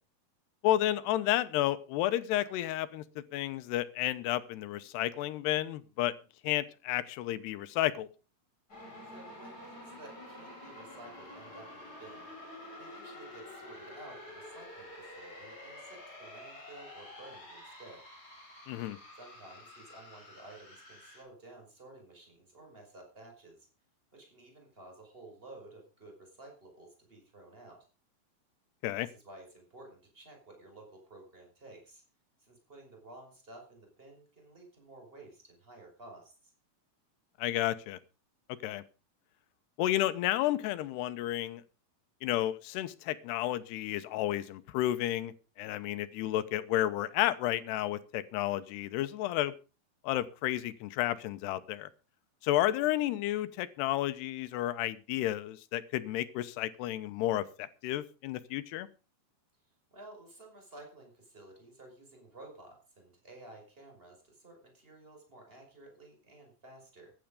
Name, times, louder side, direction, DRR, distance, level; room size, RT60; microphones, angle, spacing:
voice 1, 0.6-6.1 6.4-8.1 18.7-19.0 28.8-29.1 37.4-38.0 38.6-38.8 39.8-41.6 42.2-45.3 45.6-49.5 50.0-51.9 52.4-58.9, left 14 dB, 85° left, 13 dB, 3.0 m, -31 dB
sound 1, 8.7-21.2, left 1 dB, 20° left, 5.6 m, -49 dB
voice 2, 9.0-12.3 12.8-18.1 19.1-23.7 24.1-27.9 29.0-32.0 32.4-36.5 59.9-67.1, right 2 dB, 15° right, 2 dB, 5.3 m, -53 dB
15.0 x 11.0 x 5.1 m, 0.34 s
omnidirectional pair, 4.7 m